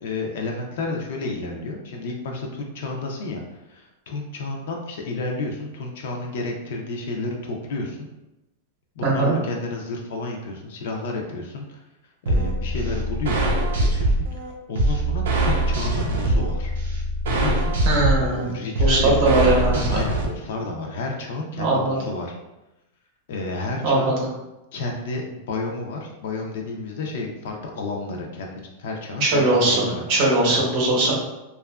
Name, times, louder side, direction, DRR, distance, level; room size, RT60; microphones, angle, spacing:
voice 1, 0.0-3.4 3.7-8.1 9.0-11.8 12.3-14.4 14.7-16.7 17.3-17.8 18.2-22.3 23.3-24.2 24.7-30.0 30.5-30.6, left 2 dB, 65° left, 1 dB, 0.4 m, -31 dB
voice 2, 9.0-9.3 17.8-18.5 18.8-20.0 21.6-22.0 23.8-24.1 29.2-31.1, right 2 dB, 40° right, -2 dB, 0.7 m, -20 dB
sound 1, 12.3-20.2, right 1 dB, 85° right, 0.5 m, -22 dB
2.7 x 2.3 x 2.2 m, 0.99 s
supercardioid pair, 165°, 0 cm